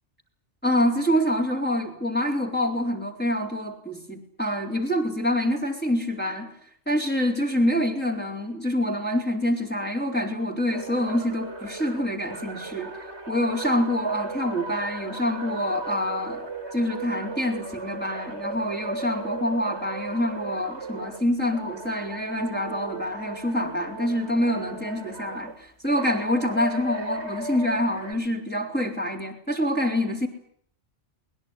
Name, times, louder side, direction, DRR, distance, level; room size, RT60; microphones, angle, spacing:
voice 1, 0.6-6.5 6.9-12.9 13.3-30.3, left 1 dB, 10° left, -1 dB, 4.2 m, -26 dB
sound 1, 10.7-21.2 21.5-25.5 26.0-28.1, right 2 dB, 65° right, 3.5 m, -37 dB
22.0 x 21.0 x 9.9 m, 0.64 s
omnidirectional pair, 1.2 m